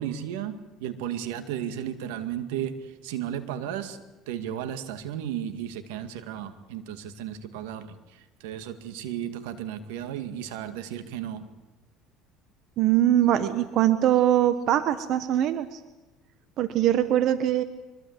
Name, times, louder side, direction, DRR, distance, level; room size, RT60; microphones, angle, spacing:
voice 1, 0.0-4.0 4.3-11.5, right 10 dB, 90° right, 10 dB, 2.1 m, -34 dB
voice 2, 12.8-15.8 16.6-17.6, right 11 dB, 55° right, 12 dB, 1.3 m, -22 dB
24.0 x 22.0 x 8.2 m, 1.1 s
supercardioid pair, 110°, 0 cm